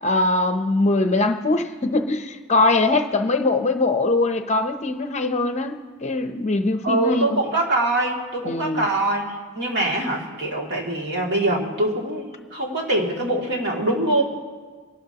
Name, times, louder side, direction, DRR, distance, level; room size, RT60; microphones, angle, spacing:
voice 1, 0.0-7.4 8.4-8.9, left 2 dB, 35° left, 7 dB, 0.7 m, -22 dB
voice 2, 6.8-12.2 12.5-14.2, right 2 dB, 55° right, -1 dB, 2.4 m, -23 dB
25.0 x 12.0 x 2.9 m, 1.5 s
head